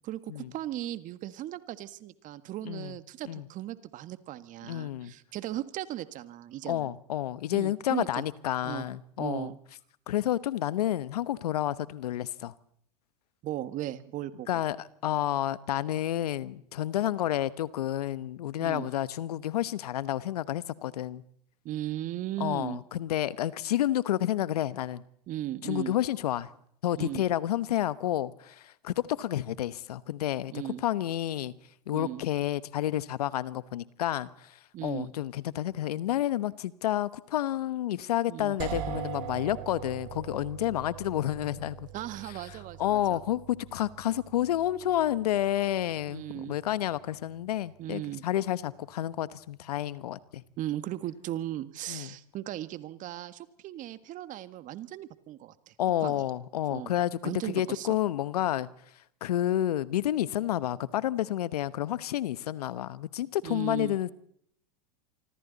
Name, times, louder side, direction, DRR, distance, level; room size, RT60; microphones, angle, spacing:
voice 1, 0.0-6.9 7.5-8.2 8.6-8.9 9.2-9.6 13.4-14.6 18.6-18.9 21.6-22.8 25.3-25.9 26.9-27.3 30.5-30.8 31.9-32.2 34.7-35.1 38.3-38.6 41.9-43.2 46.1-46.6 47.8-48.2 50.6-55.7 56.0-56.2 56.7-56.9 57.2-58.0 63.4-64.0, right 13 dB, 40° right, 1.7 m, -37 dB
voice 2, 4.7-5.1 6.7-9.5 10.1-12.5 14.5-14.8 15.0-21.2 22.4-25.0 25.6-26.5 26.8-30.5 30.8-31.5 31.9-34.3 34.8-41.9 42.8-50.4 51.9-52.1 55.8-58.7 59.2-64.1, left 12 dB, 80° left, 1.1 m, -30 dB
sound 1, 38.6-48.4, right 10 dB, 55° right, 5.0 m, -43 dB
26.0 x 25.0 x 4.1 m
hypercardioid pair, 105°, 20 cm